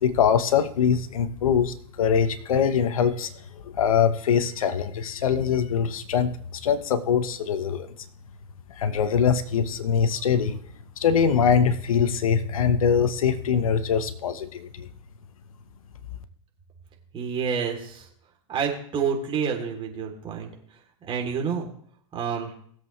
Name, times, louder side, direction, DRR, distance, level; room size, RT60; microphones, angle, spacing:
voice 1, 0.0-3.3 3.6-7.9 8.8-10.6 11.0-14.9, left 7 dB, 85° left, 11 dB, 1.2 m, -23 dB
voice 2, 17.1-18.1 18.5-20.5 21.1-21.7 22.1-22.5, right 6 dB, 30° right, 1 dB, 3.3 m, -28 dB
20.5 x 7.8 x 3.3 m, 0.62 s
hypercardioid pair, 115°, 17 cm